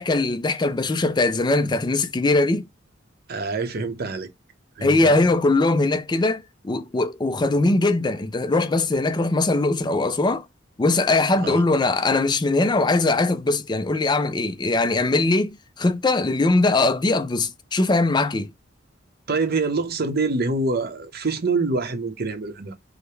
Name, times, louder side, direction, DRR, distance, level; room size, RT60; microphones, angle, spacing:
voice 1, 0.0-2.7 4.8-10.4 10.8-18.5, left 2 dB, 25° left, 0.4 m, -21 dB
voice 2, 3.3-4.3 4.8-5.2 11.4-11.6 19.3-22.7, right 3 dB, 55° right, 0.8 m, -25 dB
4.8 x 2.1 x 3.1 m
head